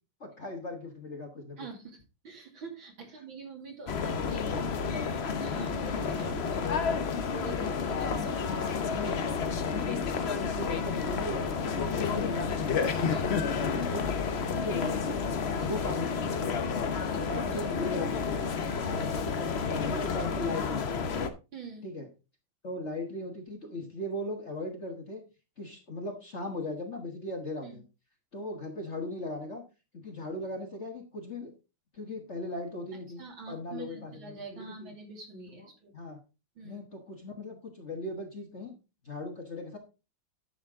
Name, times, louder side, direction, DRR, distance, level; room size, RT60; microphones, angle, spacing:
voice 1, 0.2-1.6 3.8-4.1 8.5-9.2 9.6-12.7 13.0-15.3 15.6-16.4 17.3-18.4 18.8-21.2 21.8-22.1 22.6-25.2 25.6-27.8 28.3-29.6 29.9-31.5 31.9-33.2 33.5-35.0 35.9-36.2 36.6-38.7 39.0-39.8, left 2 dB, 35° left, 2 dB, 1.4 m, -38 dB
voice 2, 1.6-2.0 2.2-8.9 13.1-13.3 15.6-15.8 16.9-17.6 21.5-21.9 27.6-27.8 33.2-35.9 36.6-36.8, right 4 dB, 65° right, 1 dB, 3.4 m, -45 dB
sound 1, 3.9-21.3, left 5 dB, 65° left, 0.6 m, -30 dB
10.0 x 6.8 x 3.7 m, 0.30 s
omnidirectional pair, 2.3 m